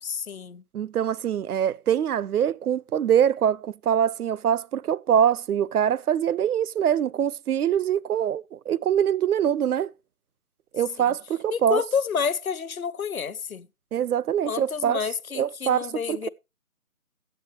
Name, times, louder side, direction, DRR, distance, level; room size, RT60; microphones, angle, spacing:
voice 1, 0.0-0.6 11.5-13.7 14.5-16.3, left 6 dB, 70° left, 0.8 m, -29 dB
voice 2, 0.7-9.9 10.7-11.8 13.9-15.0 15.4-16.3, right 9 dB, 80° right, 0.5 m, -24 dB
14.0 x 8.2 x 3.1 m
figure-of-eight pair, 170°, 45 cm